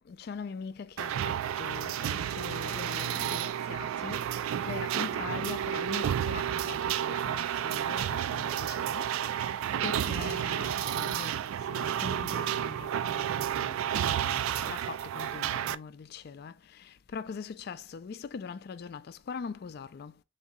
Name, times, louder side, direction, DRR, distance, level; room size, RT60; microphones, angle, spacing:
voice 1, 0.1-4.3 4.7-9.1 9.8-20.1, left 5 dB, 50° left, 0.3 m, -42 dB
sound 1, 1.0-15.8, right 10 dB, 80° right, 0.3 m, -31 dB
4.0 x 2.7 x 3.6 m
head